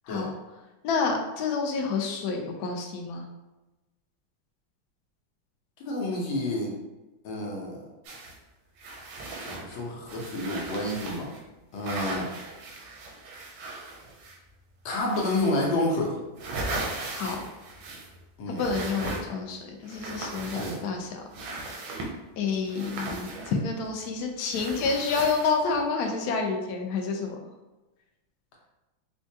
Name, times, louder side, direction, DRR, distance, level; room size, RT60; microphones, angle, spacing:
voice 1, 0.8-3.3 17.1-17.5 18.5-21.2 22.4-27.4, left 4 dB, 75° left, 2 dB, 0.9 m, -29 dB
voice 2, 5.8-6.8 7.2-7.8 9.4-11.3 11.7-12.3 14.8-16.2 18.4-18.6 20.6-20.8, left 1 dB, 90° left, -1 dB, 1.6 m, -29 dB
sound 1, 8.0-8.4 8.8-11.4 11.8-14.5 14.9-15.8 16.1-18.2 18.6-19.5 19.8-21.0 21.3-22.2 22.7-24.1 24.5-25.8, right 2 dB, 85° right, 1.5 m, -37 dB
4.4 x 2.2 x 2.7 m, 1.1 s
omnidirectional pair, 2.1 m